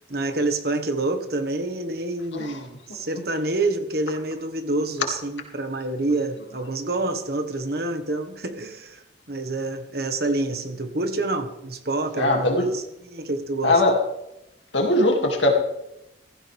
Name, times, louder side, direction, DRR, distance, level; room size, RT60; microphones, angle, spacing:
voice 1, 0.0-13.8, right 2 dB, 55° right, 7 dB, 1.5 m, -27 dB
voice 2, 12.2-12.7 13.6-14.0 14.7-15.5, left 1 dB, 80° left, 2 dB, 2.5 m, -20 dB
16.0 x 15.0 x 3.5 m, 0.89 s
head